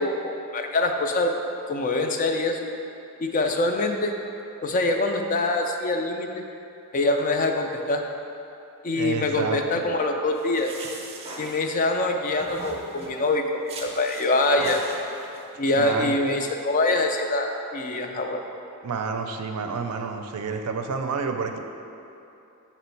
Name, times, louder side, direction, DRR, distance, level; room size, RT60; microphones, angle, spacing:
voice 1, 0.0-1.3 1.7-2.6 3.2-4.1 4.6-6.4 6.9-8.0 8.8-10.7 11.4-14.8 15.6-18.4, left 2 dB, 35° left, 4 dB, 0.4 m, -24 dB
voice 2, 8.9-9.8 14.6-14.7 15.7-16.2 18.8-21.6, right 5 dB, 90° right, 5 dB, 0.4 m, -29 dB
sound 1, 10.3-12.0 12.4-13.2 13.7-14.3 14.6-15.4, right 2 dB, 25° right, 0.5 m, -39 dB
6.9 x 3.0 x 4.5 m, 2.8 s
head